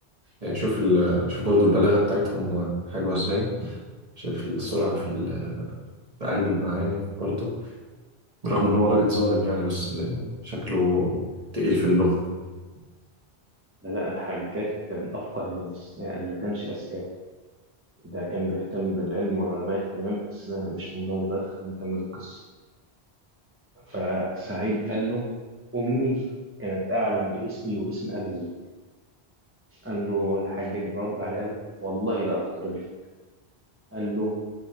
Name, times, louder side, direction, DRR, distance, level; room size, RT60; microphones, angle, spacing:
voice 1, 0.4-3.8 4.2-5.8 6.2-7.5 8.4-11.2 11.5-12.2, left 1 dB, 35° right, -5 dB, 1.4 m, -24 dB
voice 2, 13.8-17.1 18.0-22.5 23.9-25.4 25.7-28.5 29.8-32.9 33.9-34.4, right 1 dB, 15° right, -5 dB, 0.8 m, -29 dB
6.2 x 3.8 x 4.2 m, 1.3 s
omnidirectional pair, 1.1 m